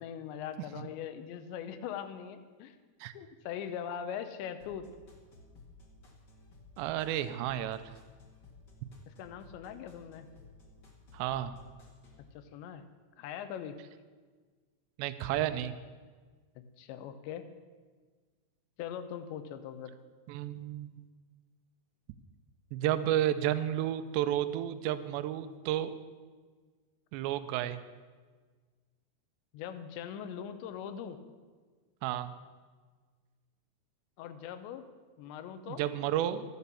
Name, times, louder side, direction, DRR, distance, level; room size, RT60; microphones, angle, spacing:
voice 1, 0.0-2.8 3.1-4.9 9.1-10.3 12.2-12.9 13.2-13.8 16.6-17.5 18.8-20.0 29.5-31.2 34.2-34.9 35.2-35.8, left 8 dB, 90° left, 10 dB, 3.2 m, -41 dB
sound 1, 4.6-12.3, left 3 dB, 40° left, 1.7 m, -56 dB
voice 2, 6.8-7.9 11.1-11.5 15.0-15.8 20.3-21.1 22.7-25.9 27.1-27.8 32.0-32.3 35.7-36.4, right 12 dB, 85° right, 12 dB, 2.9 m, -32 dB
14.0 x 11.0 x 7.0 m, 1.5 s
omnidirectional pair, 5.0 m